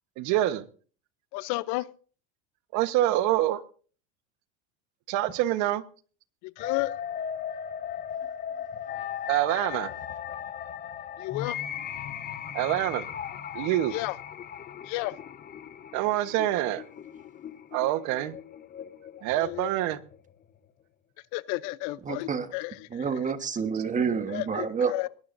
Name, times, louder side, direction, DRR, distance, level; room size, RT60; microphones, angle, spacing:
voice 1, 0.2-0.7 2.7-3.6 5.1-5.8 9.3-9.9 12.5-13.1 13.5-14.0 15.9-16.8 17.7-18.4 19.2-20.0, right 14 dB, 60° right, 1.3 m, -26 dB
voice 2, 1.3-1.8 6.6-6.9 11.2-11.6 13.9-14.1 14.9-15.1 19.4-19.7 21.3-23.0 24.3-25.1, left 21 dB, 60° left, 0.8 m, -32 dB
sound 1, 6.6-20.6, left 8 dB, 30° left, 1.0 m, -38 dB
voice 3, 22.0-22.5 22.9-24.9, right 6 dB, 25° right, 1.4 m, -28 dB
21.5 x 18.5 x 2.7 m
supercardioid pair, 110°, 32 cm